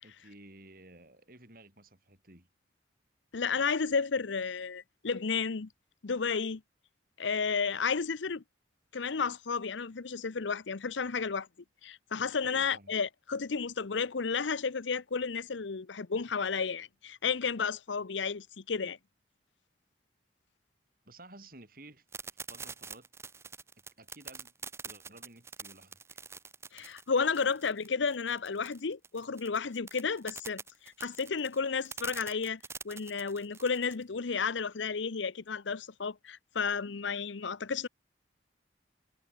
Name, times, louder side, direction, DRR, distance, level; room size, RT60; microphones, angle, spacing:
voice 1, 0.0-2.5 12.4-13.0 21.0-23.1 24.0-26.2, right 2 dB, 50° right, 7.6 m, -54 dB
voice 2, 3.3-5.7 6.0-6.6 7.2-8.4 8.9-11.5 11.8-19.0 26.7-37.9, left 5 dB, 85° left, 0.8 m, -32 dB
sound 1, 22.1-34.0, right 5 dB, 15° right, 0.5 m, -45 dB
head